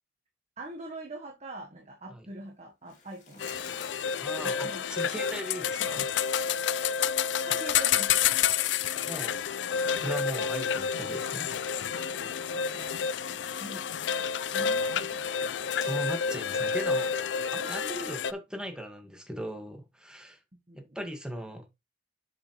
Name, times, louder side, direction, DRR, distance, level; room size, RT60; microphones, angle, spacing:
voice 1, 0.6-3.5 4.4-4.9 7.5-8.3 12.4-13.0 13.5-15.3 16.9-17.0 20.5-21.0, right 1 dB, 40° right, 1.3 m, -44 dB
sound 1, 2.9-4.9 5.6-7.6 8.0-10.2 10.5-12.0 12.2-12.4 13.0-14.7 15.4-16.3, left 6 dB, 45° left, 2.9 m, -52 dB
sound 2, 3.4-18.3, left 7 dB, 85° left, 0.4 m, -29 dB
voice 2, 4.2-6.1 9.0-9.4 9.9-11.5 14.6-14.8 15.8-17.0 17.5-20.4 20.9-21.7, right 1 dB, 5° right, 1.8 m, -38 dB
7.2 x 7.1 x 3.2 m
head